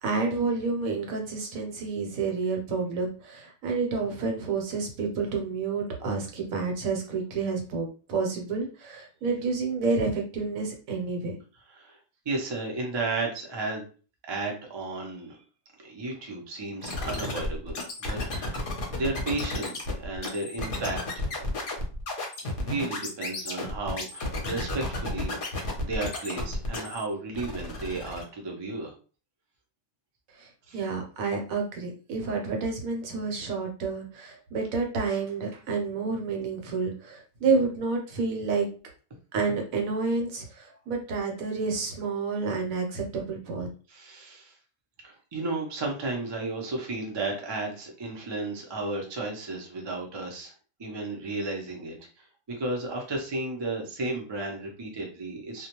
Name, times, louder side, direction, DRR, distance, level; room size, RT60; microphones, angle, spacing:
voice 1, 0.0-11.3 30.7-38.7 39.3-43.7, right 4 dB, 75° right, 2 dB, 1.1 m, -29 dB
voice 2, 11.7-12.0 12.3-13.9 14.3-15.4 15.8-21.3 22.4-25.4 25.8-28.9 30.7-30.8 43.9-44.6 45.0-50.5 50.8-55.7, right 2 dB, 40° right, 0 dB, 0.4 m, -33 dB
sound 1, 16.8-27.0 27.3-28.2, left 2 dB, 50° left, 0.7 m, -33 dB
2.3 x 2.1 x 2.9 m, 0.37 s
omnidirectional pair, 1.5 m